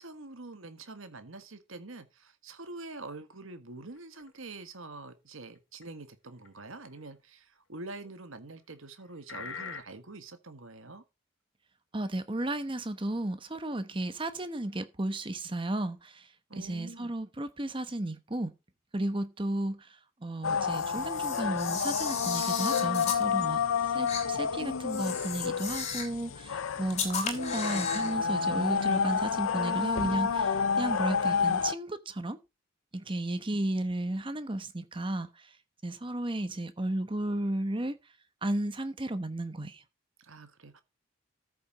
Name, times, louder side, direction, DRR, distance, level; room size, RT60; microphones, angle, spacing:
voice 1, 0.0-11.0 16.5-17.1 40.2-40.8, right 2 dB, 80° right, 1.6 m, -45 dB
sound 1, 4.0-4.3 5.8-5.9 6.4-6.5 8.0-8.1 9.3-9.8, left 5 dB, 65° left, 1.4 m, -40 dB
voice 2, 11.9-18.5 18.9-23.6 23.9-32.4 32.9-35.6 35.8-38.0 38.4-39.8, right 1 dB, 25° right, 1.0 m, -34 dB
sound 2, 20.4-31.7, left 6 dB, 85° left, 0.6 m, -30 dB
Camera, 20.7-23.2 24.1-24.2 24.9-26.2 26.9-28.1, left 6 dB, 35° left, 2.9 m, -35 dB
14.0 x 6.8 x 4.1 m
head